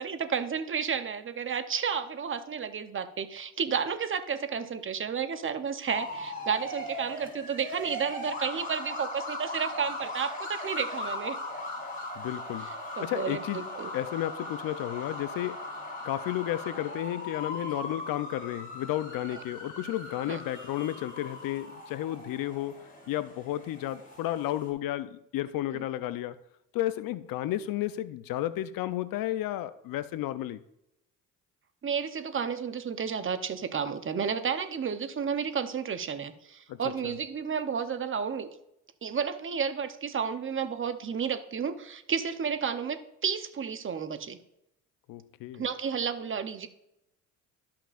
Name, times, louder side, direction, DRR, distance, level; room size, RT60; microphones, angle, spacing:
voice 1, 0.0-11.4 13.0-13.9 19.3-19.4 20.3-20.4 25.7-25.8 31.8-38.5 39.0-44.4 45.5-46.7, right 6 dB, 30° right, 0.8 m, -32 dB
sound 1, 5.9-24.7, left 2 dB, 20° left, 3.3 m, -39 dB
voice 2, 12.2-12.7 13.0-13.7 13.9-15.6 16.0-26.4 26.7-30.6 36.7-37.2 45.1-45.6, left 14 dB, 65° left, 0.6 m, -32 dB
13.0 x 5.8 x 2.5 m
supercardioid pair, 75°, 38 cm